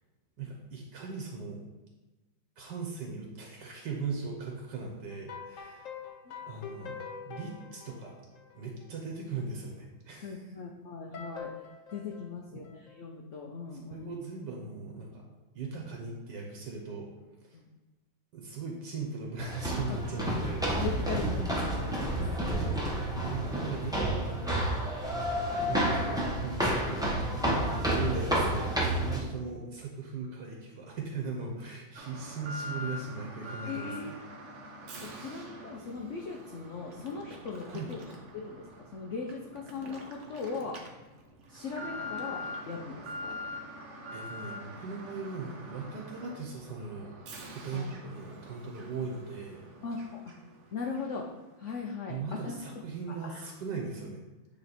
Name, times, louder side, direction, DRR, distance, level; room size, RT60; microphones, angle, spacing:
voice 1, 0.4-1.7 2.6-5.9 6.5-8.2 8.5-10.5 12.5-12.6 13.9-15.3 15.5-17.1 17.4-17.6 18.3-20.7 22.2-24.8 25.2-27.6 27.9-28.7 29.0-34.2 37.7-37.9 44.1-47.2 47.5-49.7 52.1-54.2, right 4 dB, 70° right, 0 dB, 1.5 m, -39 dB
sound 1, 5.1-8.9 11.1-13.0, left 6 dB, 60° left, 0.9 m, -44 dB
voice 2, 10.2-11.5 11.9-14.1 17.5-17.7 19.9-20.3 20.7-22.1 33.6-34.2 35.0-38.7 38.9-40.8 41.5-43.4 47.7-47.9 49.8-50.2 50.7-51.3 51.6-52.6 53.1-53.5, left 5 dB, 85° left, 1 dB, 0.6 m, -39 dB
sound 2, 19.4-29.2, right 1 dB, 5° right, 0.6 m, -30 dB
Alarm, 32.0-50.6 50.9-51.1 51.7-51.8, left 1 dB, 55° right, 0.9 m, -44 dB
8.7 x 3.1 x 4.1 m, 1.1 s
omnidirectional pair, 2.0 m